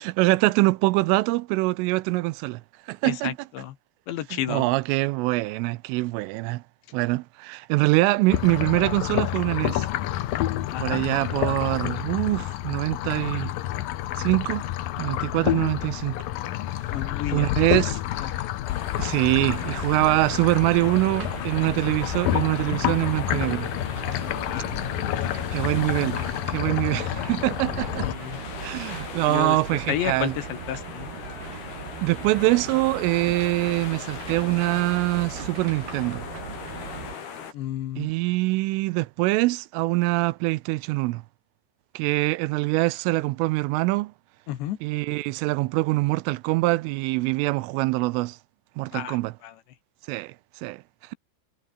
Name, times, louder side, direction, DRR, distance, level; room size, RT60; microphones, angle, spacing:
voice 1, 0.0-2.6 2.9-3.4 4.3-6.6 6.9-9.9 10.8-13.5 14.2-14.7 15.0-16.2 17.3-18.3 19.0-23.7 25.5-26.2 26.5-28.1 28.6-30.3 32.0-36.2 38.0-41.2 42.0-44.1 44.8-48.4 48.8-49.3 50.1-50.3 50.6-50.8, right 21 dB, 85° right, 3.2 m, -24 dB
voice 2, 3.0-3.8 4.1-4.7 10.7-11.1 16.9-17.5 18.2-18.3 24.4-24.8 25.2-25.6 28.0-28.4 29.3-31.1 37.5-38.1 44.5-44.8 48.9-49.2 49.4-49.6, left 12 dB, 70° left, 3.5 m, -32 dB
sound 1, 8.3-28.1, left 14 dB, 85° left, 2.0 m, -29 dB
sound 2, 18.7-37.5, left 7 dB, 50° left, 5.4 m, -40 dB
sound 3, 19.6-37.2, right 6 dB, 55° right, 6.0 m, -39 dB
omnidirectional pair, 5.9 m